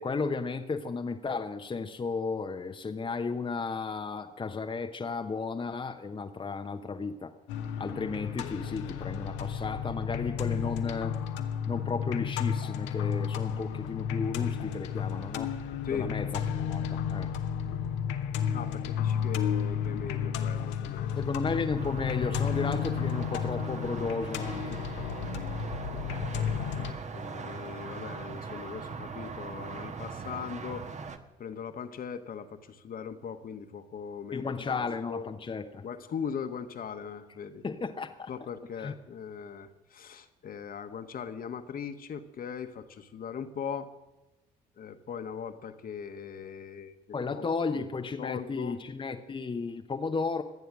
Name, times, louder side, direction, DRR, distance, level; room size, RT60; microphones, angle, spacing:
voice 1, 0.0-7.3 7.8-11.2 11.7-15.5 15.9-16.4 16.7-17.3 21.2-24.8 34.3-35.8 37.6-38.3 38.8-38.9 47.1-50.4, left 4 dB, 25° left, 6 dB, 1.0 m, -34 dB
sound 1, 7.5-26.9, left 8 dB, 65° left, 1.2 m, -32 dB
voice 2, 15.8-16.2 18.5-21.2 25.9-30.9 31.4-34.8 35.1-35.3 35.8-37.6 38.3-43.9 44.8-47.0 47.3-47.5 47.7-47.9 48.2-48.8, left 7 dB, 45° left, 9 dB, 1.4 m, -39 dB
sound 2, 21.7-31.2, right 5 dB, 35° right, 1.4 m, -40 dB
24.0 x 9.4 x 6.3 m, 1.1 s
figure-of-eight pair, 45°, 21 cm